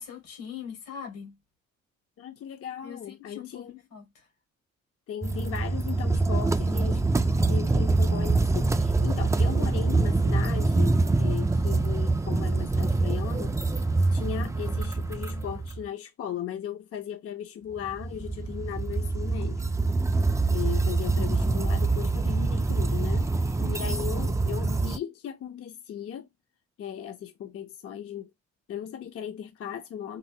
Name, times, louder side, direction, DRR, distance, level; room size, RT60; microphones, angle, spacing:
voice 1, 0.0-1.3 2.8-4.0 23.6-24.0, left 8 dB, 90° left, 2.2 m, -41 dB
voice 2, 2.2-3.8 5.1-7.1 7.5-19.7 20.5-26.3 26.8-28.3 28.7-30.2, left 9 dB, 50° left, 0.5 m, -37 dB
sound 1, 5.2-15.8 17.8-25.0, right 3 dB, 10° right, 0.3 m, -25 dB
4.2 x 2.1 x 2.6 m
cardioid pair, 90°, 30 cm